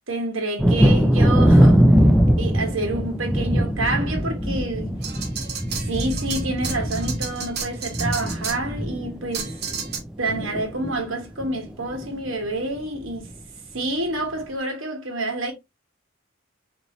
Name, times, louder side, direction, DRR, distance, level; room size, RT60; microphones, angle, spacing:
voice 1, 0.1-1.9 2.4-4.9 5.9-9.5 10.2-13.3 13.7-15.5, right 2 dB, 70° right, 1.4 m, -28 dB
Thunder, 0.6-10.0 10.3-11.0 11.4-11.5 11.9-12.1, equal, 5° right, 0.3 m, -20 dB
sound 1, 5.0-8.6 9.3-10.0, right 6 dB, 50° right, 1.0 m, -32 dB
4.4 x 2.7 x 2.9 m
head